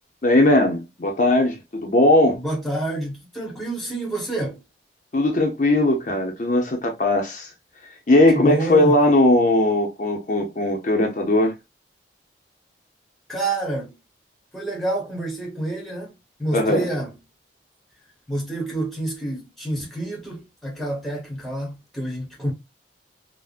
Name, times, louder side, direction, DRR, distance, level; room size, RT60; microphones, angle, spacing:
voice 1, 0.2-2.4 5.1-7.5 8.1-11.5 16.5-16.9, left 1 dB, 45° left, 0.6 m, -19 dB
voice 2, 2.3-4.6 8.3-9.0 13.3-13.9 14.5-16.1 16.4-17.1 18.3-22.5, right 1 dB, ahead, 1.0 m, -28 dB
3.4 x 2.1 x 2.4 m
head